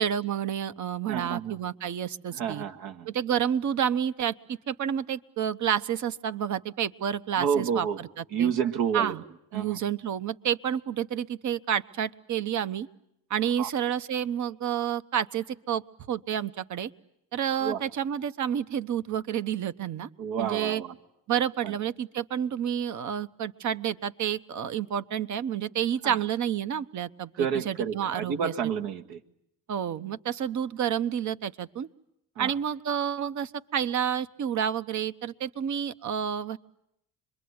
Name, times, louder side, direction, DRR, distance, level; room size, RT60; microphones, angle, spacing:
voice 1, 0.0-2.6 3.1-8.5 8.9-9.2 9.5-12.9 13.3-15.8 16.1-16.9 17.3-20.1 20.4-20.8 21.3-28.5 29.7-31.9 32.4-36.6, right 9 dB, 50° right, 14 dB, 1.1 m, -29 dB
voice 2, 1.1-1.6 2.3-3.1 7.4-8.0 8.3-9.1 9.5-9.8 13.6-13.7 17.6-17.8 20.2-21.0 21.6-21.7 26.0-26.2 27.4-29.2 32.4-32.5, right 7 dB, 75° right, 5 dB, 1.9 m, -29 dB
26.0 x 22.0 x 9.6 m, 0.77 s
supercardioid pair, 85°, 36 cm